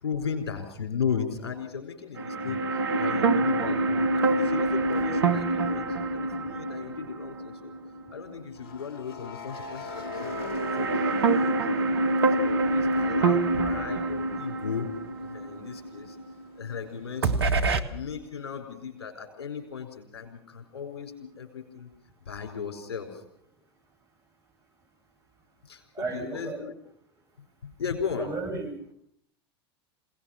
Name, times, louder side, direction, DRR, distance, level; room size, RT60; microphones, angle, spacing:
voice 1, 0.0-5.9 6.1-7.7 8.1-11.0 11.3-14.9 15.2-16.2 16.5-17.5 17.9-21.9 22.3-23.2 25.6-26.7 27.6-28.3, left 6 dB, 70° left, 5 dB, 4.6 m, -36 dB
sound 1, 2.2-8.4 8.7-8.8 9.9-16.9 17.2-17.8, right 2 dB, 75° right, 1.4 m, -26 dB
sound 2, 5.5-5.6 8.5-12.4 12.8-16.4, left 4 dB, 55° left, 2.5 m, -42 dB
voice 2, 26.0-26.6 28.2-28.7, right 3 dB, 20° right, 2 dB, 7.2 m, -34 dB
27.5 x 18.0 x 5.8 m, 0.66 s
figure-of-eight pair, 80°, 13 cm